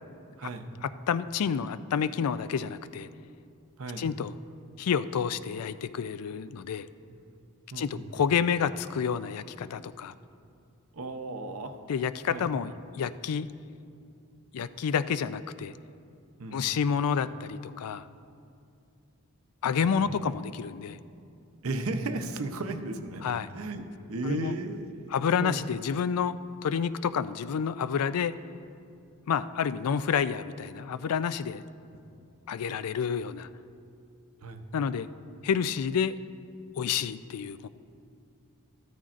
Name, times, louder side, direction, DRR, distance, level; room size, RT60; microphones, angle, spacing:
voice 1, 0.4-0.7 3.8-4.1 7.0-7.2 7.7-8.2 10.9-11.8 12.3-12.5 16.4-16.6 19.9-20.3 21.6-23.8 24.1-25.6 34.4-34.6, right 2 dB, 70° right, 7 dB, 0.7 m, -35 dB
voice 2, 1.1-3.1 4.0-4.3 4.8-6.9 7.8-10.1 11.9-13.5 14.5-15.7 16.5-18.1 19.6-21.0 23.2-23.5 24.2-24.5 25.1-28.4 29.3-31.6 32.5-33.5 34.7-35.1 35.4-36.2 36.8-37.7, left 7 dB, 85° left, 14 dB, 0.4 m, -29 dB
14.0 x 13.0 x 2.5 m, 2.4 s
head